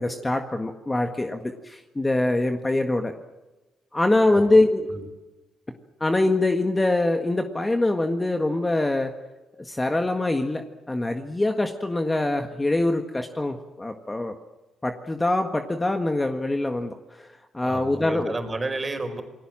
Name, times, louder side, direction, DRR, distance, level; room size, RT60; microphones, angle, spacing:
voice 1, 0.0-3.1 3.9-4.9 6.0-9.1 9.6-14.3 14.8-17.3 17.5-18.3, left 2 dB, 15° left, 5 dB, 1.7 m, -24 dB
voice 2, 17.6-19.2, right 2 dB, 25° right, 6 dB, 4.9 m, -31 dB
28.0 x 20.0 x 7.6 m, 1.1 s
cardioid pair, 90°, 0 cm